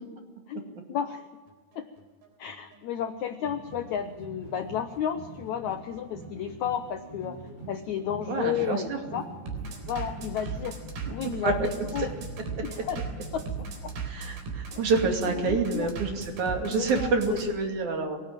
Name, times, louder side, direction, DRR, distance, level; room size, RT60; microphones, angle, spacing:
voice 1, 0.5-1.2 1.8-1.9 2.4-7.4 7.7-9.3 9.9-10.8 11.1-12.1 12.6-13.0 13.3-13.9 14.7-14.8 15.3-15.9 16.6-17.5, left 9 dB, 75° left, 9 dB, 1.7 m, -32 dB
Bass drum, 1.5-17.5, right 5 dB, 75° right, 5.7 m, -38 dB
sound 1, 3.4-14.0, right 3 dB, 25° right, 8.2 m, -45 dB
voice 2, 8.3-9.0 11.4-11.7 12.6-12.7 14.0-18.2, right 4 dB, 55° right, 3 dB, 3.8 m, -27 dB
24.5 x 19.0 x 9.0 m, 1.5 s
omnidirectional pair, 4.3 m